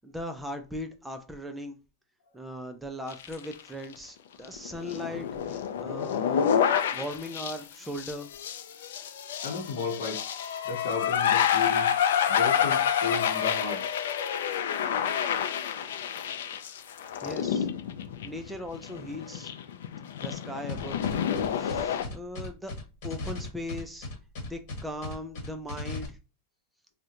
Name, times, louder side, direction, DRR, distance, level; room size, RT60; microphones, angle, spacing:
voice 1, 0.0-1.8 2.3-6.5 6.9-8.3 17.2-17.7 18.2-19.5 20.2-21.1 21.5-22.7 23.0-24.1 24.4-26.2, equal, 5° right, 0.3 m, -38 dB
sound 1, 3.1-3.5 3.8-3.9 4.4-22.0, left 8 dB, 80° left, 0.4 m, -28 dB
voice 2, 9.4-10.2 10.6-12.0 12.3-13.9, left 4 dB, 60° left, 0.8 m, -34 dB
sound 2, 20.7-26.1, left 3 dB, 40° left, 1.2 m, -37 dB
3.6 x 2.1 x 2.8 m
supercardioid pair, 175°, 0 cm